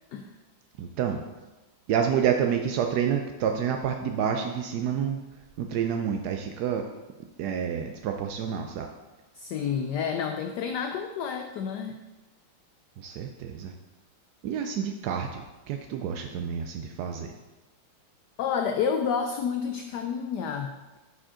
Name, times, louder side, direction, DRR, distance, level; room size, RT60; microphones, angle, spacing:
voice 1, 0.8-1.2 1.9-5.2 5.6-6.9 7.4-8.9 13.0-13.7 14.4-17.3, right 8 dB, 80° right, 4 dB, 0.9 m, -28 dB
voice 2, 9.4-12.0 18.4-21.0, left 7 dB, 80° left, 5 dB, 0.9 m, -29 dB
9.8 x 5.1 x 3.7 m, 1.1 s
omnidirectional pair, 2.3 m